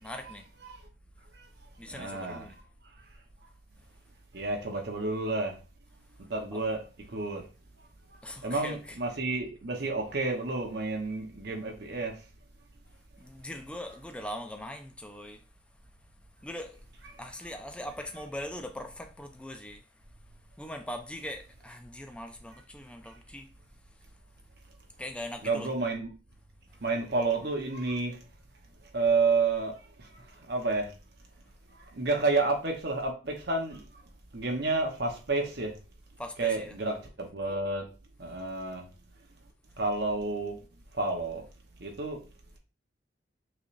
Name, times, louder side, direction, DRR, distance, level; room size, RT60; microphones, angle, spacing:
voice 1, 0.0-0.4 1.8-2.6 6.5-6.6 8.2-9.0 13.2-15.4 16.4-16.8 17.2-19.8 20.6-23.5 25.0-25.8 36.2-36.8, left 1 dB, 5° left, 0.4 m, -41 dB
voice 2, 1.8-2.5 4.3-5.6 6.2-6.8 7.1-7.4 8.4-12.2 25.4-26.1 26.8-28.2 28.9-30.9 31.7-34.0 34.3-35.8 36.4-37.8 38.2-38.9 39.8-40.6 40.9-41.4 41.8-42.2, right 3 dB, 55° right, 1.0 m, -30 dB
6.1 x 3.3 x 2.6 m
head